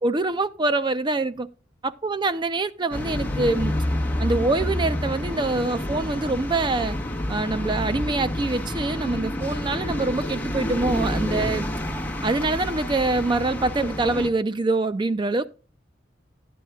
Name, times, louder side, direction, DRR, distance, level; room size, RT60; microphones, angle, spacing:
voice 1, 0.0-1.5 1.8-3.7 4.2-7.0 7.3-11.7 12.2-15.5, right 2 dB, 25° right, 0.4 m, -25 dB
sound 1, 2.9-14.3, left 1 dB, 10° left, 1.3 m, -28 dB
12.0 x 9.2 x 2.3 m
head